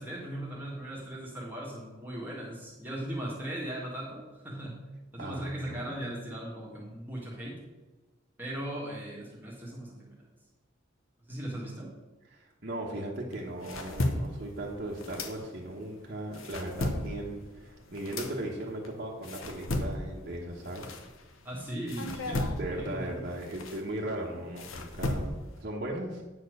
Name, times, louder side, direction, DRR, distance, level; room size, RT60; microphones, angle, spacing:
voice 1, 0.0-4.8 5.1-7.6 8.4-10.1 11.3-11.9 21.4-23.2, right 1 dB, 10° right, -5 dB, 1.7 m, -38 dB
voice 2, 5.2-5.9 12.3-21.0 22.5-26.2, right 1 dB, 45° right, -5 dB, 1.1 m, -37 dB
sound 1, 13.3-15.8 16.2-21.5 21.9-25.6, left 1 dB, 80° left, 1.0 m, -35 dB
9.1 x 4.4 x 6.5 m, 1.1 s
head